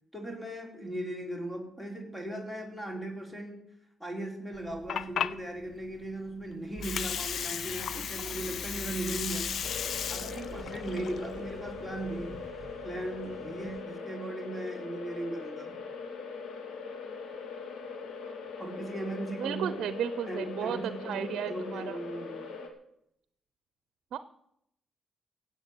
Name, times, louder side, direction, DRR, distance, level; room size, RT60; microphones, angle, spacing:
voice 1, 0.1-3.6 4.0-9.7 10.1-12.4 12.8-15.8 18.6-19.8 20.3-22.5, right 1 dB, 10° left, 2 dB, 4.3 m, -38 dB
Water, 4.5-12.5, left 8 dB, 65° left, 0.6 m, -36 dB
sound 1, 6.7-13.8, right 4 dB, 20° right, 4.3 m, -47 dB
sound 2, 9.6-22.7, left 5 dB, 80° left, 2.6 m, -41 dB
voice 2, 19.4-22.0 24.1-24.2, right 9 dB, 80° right, 13 dB, 0.7 m, -34 dB
16.5 x 8.1 x 8.0 m, 0.77 s
cardioid pair, 85°, 0 cm